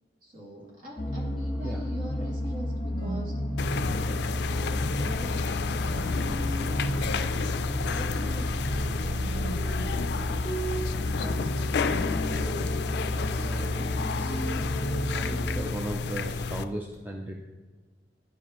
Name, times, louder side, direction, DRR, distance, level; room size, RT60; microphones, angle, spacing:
voice 1, 0.2-3.4 3.8-7.4 7.9-10.4 11.2-11.6, equal, 50° right, -5 dB, 2.3 m, -44 dB
sound 1, 1.0-15.6, equal, 30° left, 0.9 m, -31 dB
voice 2, 1.5-1.9 2.2-2.3 12.3-12.6 13.4-13.9 14.2-14.6 15.1-17.4, right 1 dB, 10° right, -1 dB, 0.5 m, -37 dB
sound 2, 3.6-16.6, left 4 dB, 65° left, 0.3 m, -31 dB
11.0 x 4.9 x 3.0 m, 1.3 s
head